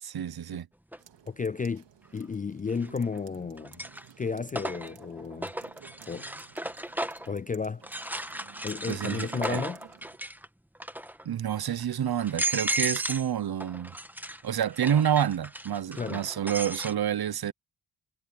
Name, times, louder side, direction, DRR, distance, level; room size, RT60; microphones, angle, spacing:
voice 1, 0.0-0.7 8.9-9.6 11.2-13.9 14.4-17.5, right 9 dB, 60° right, 1.0 m, -28 dB
sound 1, 0.9-1.0 2.7-3.2 3.6-7.3 7.8-10.5 10.7-11.2 11.8-11.9 12.2-13.3 13.6-16.9, right 1 dB, 5° right, 1.8 m, -35 dB
sound 2, 1.0-10.2, right 10 dB, 85° right, 2.2 m, -54 dB
voice 2, 1.3-1.8 2.1-3.8 4.2-5.5 6.1-6.3 7.3-7.8 8.6-9.8 15.9-16.2, left 5 dB, 20° left, 0.3 m, -32 dB
supercardioid pair, 45°, 42 cm